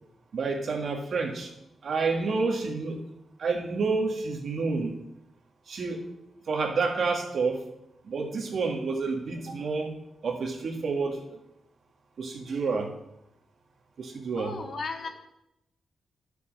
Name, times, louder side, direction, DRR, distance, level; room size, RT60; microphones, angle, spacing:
voice 1, 0.3-1.5 1.8-3.0 3.4-5.0 5.7-6.1 6.5-7.6 8.0-9.9 10.2-11.4 12.2-12.9 14.0-14.5, right 4 dB, 65° right, 2 dB, 1.8 m, -29 dB
voice 2, 14.4-15.1, left 4 dB, 60° left, 3 dB, 1.8 m, -35 dB
11.0 x 6.9 x 5.3 m, 0.84 s
cardioid pair, 85°, 0 cm